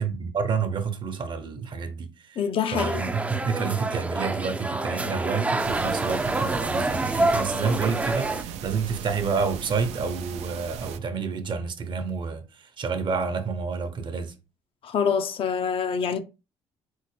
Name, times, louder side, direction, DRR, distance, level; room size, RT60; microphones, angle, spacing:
voice 1, 0.0-2.4 2.7-14.4, right 5 dB, 45° right, 0.8 m, -29 dB
voice 2, 2.4-3.0 14.8-16.2, left 7 dB, 55° left, 0.5 m, -25 dB
sound 1, 2.8-8.4, right 2 dB, 10° right, 0.4 m, -27 dB
sound 2, 5.6-11.0, right 8 dB, 75° right, 0.5 m, -38 dB
4.4 x 2.1 x 3.2 m
supercardioid pair, 75°, 11 cm